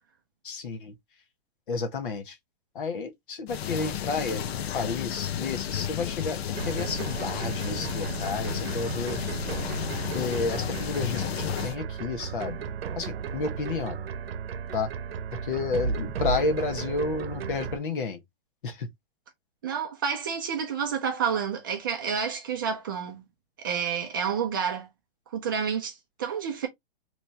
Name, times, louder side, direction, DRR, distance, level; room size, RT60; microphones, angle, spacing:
voice 1, 0.4-0.9 1.7-2.4 2.7-9.2 10.1-12.6 13.0-14.0 14.7-14.9 15.4-18.2 18.6-18.9, left 4 dB, 60° left, 1.0 m, -31 dB
sound 1, 3.5-11.8, left 10 dB, 90° left, 0.6 m, -32 dB
sound 2, 6.5-17.8, right 6 dB, 75° right, 0.8 m, -34 dB
voice 2, 19.6-23.2 23.6-24.9 25.3-26.7, right 7 dB, 20° right, 0.5 m, -29 dB
3.4 x 3.0 x 2.6 m
hypercardioid pair, 180°, 30 cm